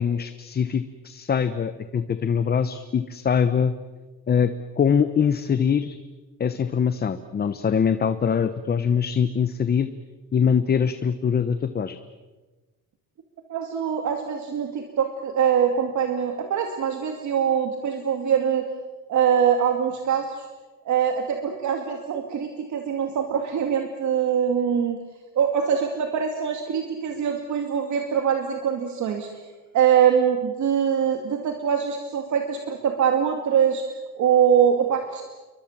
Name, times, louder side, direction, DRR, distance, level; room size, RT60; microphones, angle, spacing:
voice 1, 0.0-3.7 4.3-6.0 6.4-9.9 10.3-12.0, left 7 dB, 30° left, 11 dB, 0.9 m, -23 dB
voice 2, 13.5-18.7 19.1-20.5 20.9-25.0 25.3-29.3 29.7-33.8 34.2-35.2, right 8 dB, 60° right, 4 dB, 2.5 m, -23 dB
29.5 x 23.5 x 7.4 m, 1.2 s
cardioid pair, 170°, 33 cm